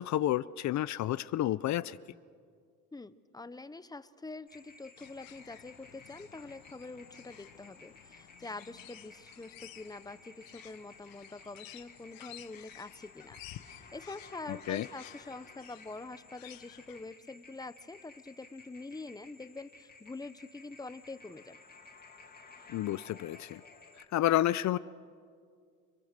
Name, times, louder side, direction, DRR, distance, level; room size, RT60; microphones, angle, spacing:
voice 1, 0.0-2.0 14.5-14.9 22.7-23.6 24.1-24.8, left 13 dB, 55° left, 17 dB, 0.5 m, -30 dB
voice 2, 2.9-21.6, left 3 dB, 10° left, 14 dB, 0.8 m, -45 dB
sound 1, 4.5-24.1, left 3 dB, 25° left, 2.3 m, -56 dB
sound 2, 5.0-17.1, left 14 dB, 85° left, 1.1 m, -54 dB
29.5 x 22.5 x 6.7 m, 2.1 s
cardioid pair, 120°, 34 cm